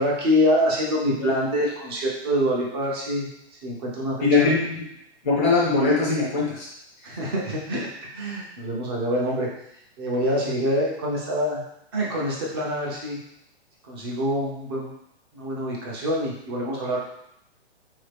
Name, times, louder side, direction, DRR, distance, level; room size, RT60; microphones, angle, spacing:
voice 1, 0.0-3.3 3.6-4.5 7.0-9.5 10.0-11.6 11.9-13.2 13.8-14.9 15.3-17.0, equal, 20° right, -3 dB, 0.7 m, -25 dB
voice 2, 4.2-4.8 5.2-6.7, left 3 dB, 15° left, -5 dB, 0.6 m, -21 dB
4.0 x 2.8 x 3.4 m, 0.76 s
hypercardioid pair, 165°, 33 cm